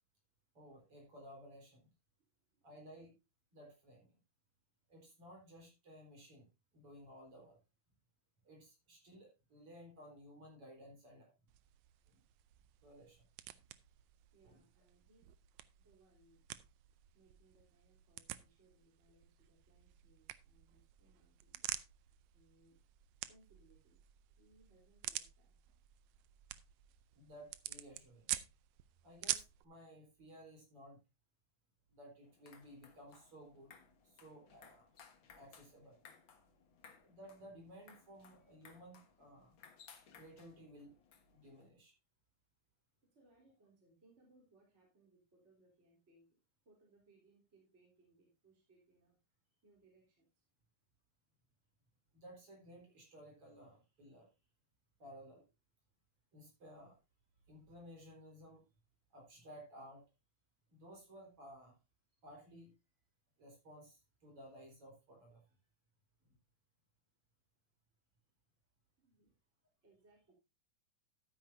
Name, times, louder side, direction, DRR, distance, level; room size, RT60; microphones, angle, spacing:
voice 1, 0.5-1.9 2.6-3.1 3.5-4.1 4.9-6.5 6.7-7.6 8.4-11.3 12.1-12.2 12.8-13.2 13.5-13.6 14.4-14.6 27.1-28.2 29.0-31.0 31.9-33.7 34.0-34.9 35.3-36.0 37.0-39.6 40.2-41.0 41.3-41.9 52.1-54.3 55.0-55.5 56.3-57.0 57.5-58.6 59.1-60.0 60.7-61.8 62.2-62.7 63.4-65.4 66.2-66.3, equal, 50° right, 0 dB, 5.1 m, -56 dB
sound 1, 11.5-29.6, right 15 dB, 80° right, 1.9 m, -48 dB
voice 2, 14.3-15.3 15.8-16.4 17.1-22.8 23.3-25.6 43.0-46.4 46.6-49.2 49.6-50.4 69.0-69.3 69.8-70.3, right 2 dB, 20° right, -2 dB, 3.7 m, -70 dB
sound 2, 32.2-41.7, left 6 dB, 50° left, 1.8 m, -63 dB
13.0 x 9.4 x 2.7 m, 0.25 s
omnidirectional pair, 3.4 m